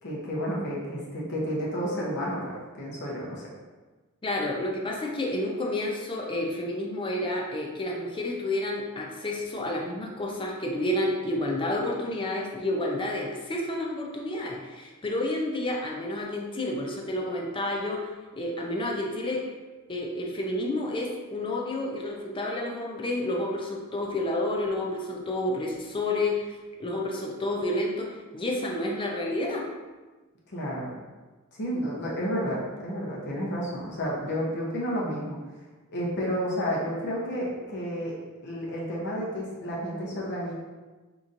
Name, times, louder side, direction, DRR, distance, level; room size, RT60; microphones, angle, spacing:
voice 1, 0.0-3.5 30.5-31.0 31.5-35.4 35.9-38.2 38.4-40.5, equal, 55° left, -4 dB, 0.8 m, -31 dB
voice 2, 4.2-18.1 18.4-19.5 19.9-29.7, left 1 dB, 25° left, -1 dB, 0.5 m, -30 dB
3.9 x 2.9 x 2.5 m, 1.3 s
head